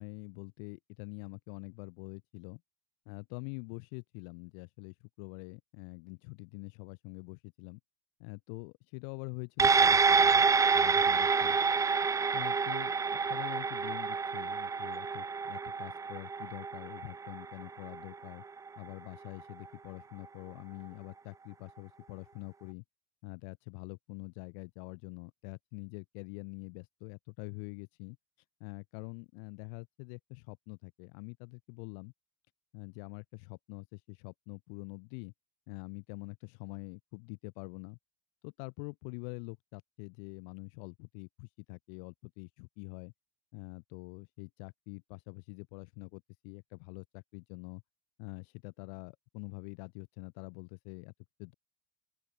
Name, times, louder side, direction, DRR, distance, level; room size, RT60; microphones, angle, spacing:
voice 1, 0.0-2.6 3.1-7.8 8.2-10.5 10.7-11.6 12.3-18.4 18.8-22.8 23.2-28.2 28.6-32.1 32.7-35.3 35.7-38.0 38.4-43.1 43.5-47.8 48.2-51.1 51.4-51.5, left 40 dB or more, 70° left, 2.6 m, -45 dB
sound 1, 9.6-18.3 18.7-18.8, right 5 dB, 15° right, 0.6 m, -28 dB
open air
hypercardioid pair, 80°, 18 cm